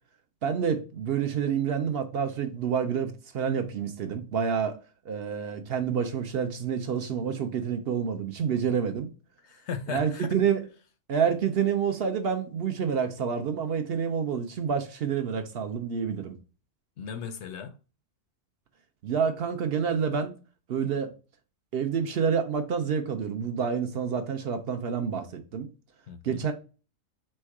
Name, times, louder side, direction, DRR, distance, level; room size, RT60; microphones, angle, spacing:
voice 1, 0.4-4.8 5.1-9.1 9.9-10.6 11.1-16.3 19.0-20.3 20.7-21.1 21.7-25.7 26.2-26.5, right 7 dB, 60° right, 0.7 m, -28 dB
voice 2, 9.4-10.3 17.0-17.7 26.1-26.5, left 6 dB, 65° left, 0.8 m, -37 dB
4.3 x 2.2 x 4.6 m
omnidirectional pair, 1.4 m